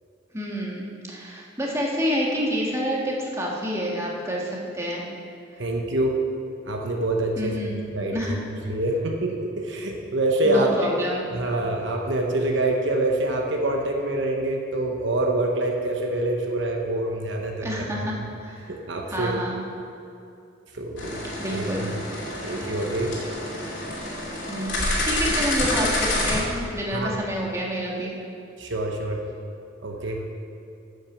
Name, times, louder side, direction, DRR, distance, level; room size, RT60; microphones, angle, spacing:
voice 1, 0.3-5.1 7.4-7.7 8.1-8.7 10.4-11.2 17.6-18.2 18.4-18.7 19.1-19.6 21.4-21.9 24.5-28.1, equal, 15° right, -3 dB, 1.6 m, -28 dB
voice 2, 5.6-6.2 6.7-10.7 11.3-17.8 18.7-19.4 20.7-21.2 21.5-21.9 22.4-23.2 26.9-27.2 28.6-29.2 29.8-30.3, right 1 dB, 65° right, 1 dB, 1.0 m, -26 dB
sound 1, 21.0-26.4, left 1 dB, 70° left, 2.7 m, -28 dB
9.9 x 6.3 x 7.1 m, 2.6 s
head